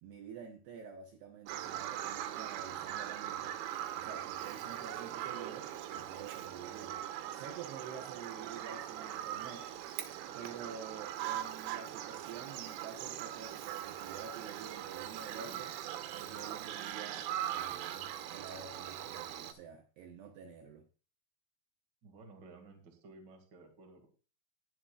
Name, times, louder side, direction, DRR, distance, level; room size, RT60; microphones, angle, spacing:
voice 1, 0.0-9.7 10.3-15.8 16.1-20.8, right 7 dB, 70° right, 4 dB, 2.6 m, -49 dB
Bird vocalization bird call bird song, 1.5-19.5, right 11 dB, 90° right, 3.6 m, -41 dB
voice 2, 22.0-24.1, right 3 dB, 45° right, 3 dB, 1.4 m, -55 dB
19.5 x 7.5 x 2.4 m, 0.37 s
omnidirectional pair, 5.6 m